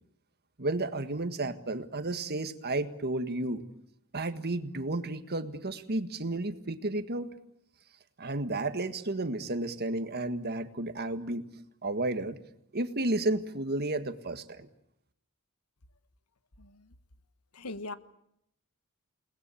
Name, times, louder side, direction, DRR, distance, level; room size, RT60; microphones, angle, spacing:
voice 1, 0.6-3.6 4.1-7.3 8.2-11.5 11.8-12.4 12.7-14.7, right 2 dB, 45° right, 9 dB, 1.7 m, -32 dB
voice 2, 16.6-16.9 17.5-17.9, left 2 dB, 90° left, 12 dB, 1.4 m, -40 dB
29.5 x 20.0 x 8.6 m, 0.75 s
head